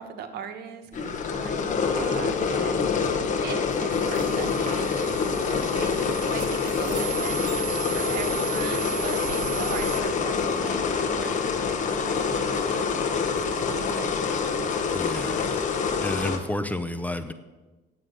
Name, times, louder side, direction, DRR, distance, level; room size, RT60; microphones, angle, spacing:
voice 1, 0.0-3.1 3.4-7.5 7.9-14.5, right 7 dB, 70° right, 7 dB, 1.1 m, -39 dB
sound 1, 0.9-16.4, left 5 dB, 45° left, 1.1 m, -26 dB
sound 2, 0.9-16.5, right 3 dB, 45° right, 2.8 m, -49 dB
sound 3, 3.9-10.0, right 13 dB, 25° right, 2.2 m, -36 dB
voice 2, 14.9-15.7 16.0-17.3, left 1 dB, 10° left, 10 dB, 0.6 m, -31 dB
9.2 x 7.4 x 6.6 m, 1.2 s
cardioid pair, 110°, 17 cm